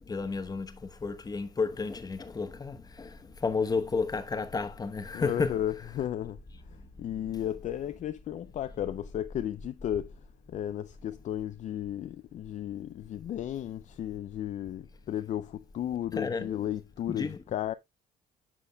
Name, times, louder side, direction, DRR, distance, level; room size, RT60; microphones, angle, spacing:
voice 1, 0.1-5.6 7.3-7.4 15.9-16.6 17.1-17.4, left 4 dB, 25° left, 1.0 m, -32 dB
voice 2, 5.1-6.4 7.0-10.1 10.5-17.7, left 11 dB, 45° left, 0.4 m, -34 dB
9.9 x 6.2 x 2.3 m
cardioid pair, 110°, 17 cm